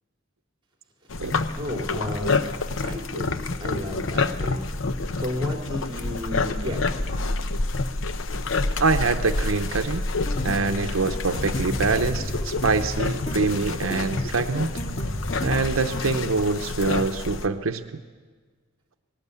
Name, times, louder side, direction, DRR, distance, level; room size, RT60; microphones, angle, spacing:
sound 1, 1.1-17.5, left 3 dB, 70° left, 0.8 m, -28 dB
voice 1, 1.6-2.4 2.8-4.6 5.2-6.8, left 1 dB, 25° right, 1 dB, 3.7 m, -32 dB
voice 2, 8.8-10.0 10.4-14.8 15.4-18.0, right 4 dB, 85° right, 8 dB, 0.8 m, -25 dB
sound 2, 10.2-16.1, equal, 30° left, 2.1 m, -33 dB
20.0 x 17.5 x 8.4 m, 1.5 s
head